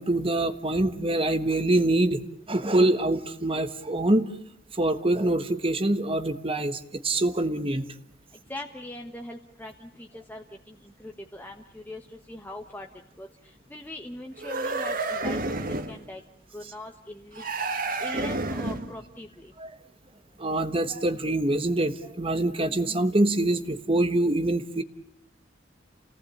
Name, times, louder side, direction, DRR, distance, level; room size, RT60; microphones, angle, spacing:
voice 1, 0.0-4.3 4.7-7.8 19.6-19.7 20.4-24.8, right 1 dB, 30° right, 10 dB, 1.3 m, -25 dB
voice 2, 8.5-12.9 13.2-13.3 13.7-15.6 15.9-16.2 16.5-17.4 18.0-19.5, left 1 dB, 10° left, 2 dB, 1.3 m, -41 dB
sound 1, 14.4-16.0 17.4-19.0, right 2 dB, 45° right, 1.9 m, -30 dB
29.5 x 18.5 x 8.6 m, 0.73 s
head